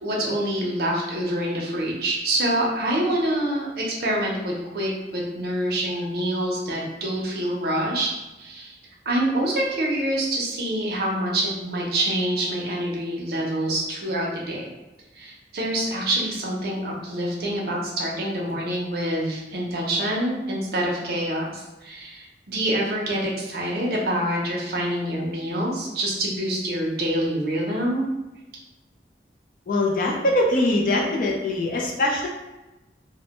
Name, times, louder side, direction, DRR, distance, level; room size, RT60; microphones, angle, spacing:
voice 1, 0.0-8.1 8.4-8.7 9.1-14.7 15.1-28.0, right 1 dB, 60° right, -2 dB, 0.5 m, -26 dB
voice 2, 29.7-32.3, left 1 dB, 50° left, -1 dB, 0.4 m, -22 dB
2.1 x 2.1 x 2.9 m, 1.0 s
head